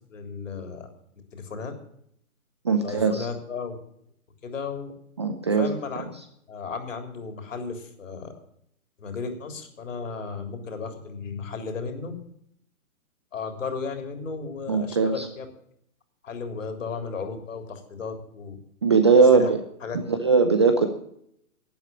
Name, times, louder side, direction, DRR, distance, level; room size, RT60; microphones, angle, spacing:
voice 1, 0.1-0.9 1.3-1.7 2.8-3.8 4.4-4.9 5.5-6.1 6.5-8.3 9.0-12.2 13.3-15.5 16.2-18.6 19.3-19.5 19.8-20.0, left 5 dB, 60° left, 5 dB, 3.6 m, -34 dB
voice 2, 2.6-3.3 5.2-5.7 14.7-15.3 18.8-19.6 19.9-20.9, right 4 dB, 20° right, 8 dB, 0.5 m, -20 dB
12.0 x 9.3 x 8.7 m, 0.71 s
hypercardioid pair, 155°, 44 cm